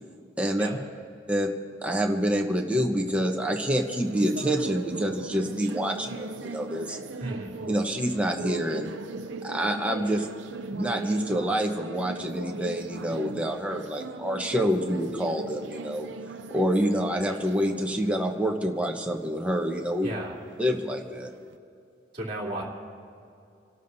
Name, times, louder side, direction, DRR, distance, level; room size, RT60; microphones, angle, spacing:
voice 1, 0.4-0.7 1.3-1.5 1.8-7.0 7.7-8.9 9.4-10.3 10.7-16.1 16.5-20.1 20.6-21.3, equal, 5° right, 1 dB, 1.0 m, -27 dB
sound 1, 3.1-21.6, right 3 dB, 85° right, 0.5 m, -40 dB
voice 2, 7.2-7.5 20.0-20.4 22.1-22.6, right 1 dB, 30° right, -5 dB, 2.9 m, -33 dB
29.5 x 12.5 x 2.7 m, 2.7 s
head